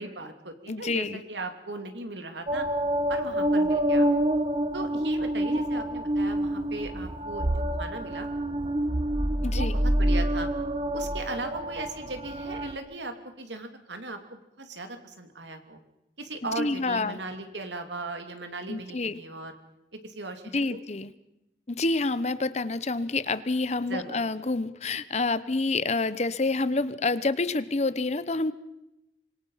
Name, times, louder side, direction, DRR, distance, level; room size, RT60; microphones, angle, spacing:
voice 1, 0.0-2.7 3.1-4.1 4.7-7.5 7.8-8.3 9.5-10.5 10.9-15.8 16.2-19.6 20.0-20.8 23.9-24.2, right 2 dB, 80° right, 6 dB, 3.0 m, -38 dB
voice 2, 0.7-1.2 9.4-9.7 16.6-17.2 18.7-19.2 20.5-21.1 21.7-28.5, left 3 dB, 35° left, 15 dB, 0.9 m, -28 dB
sound 1, 2.5-12.7, right 1 dB, 30° right, 1.3 m, -27 dB
26.0 x 22.5 x 5.7 m, 0.90 s
head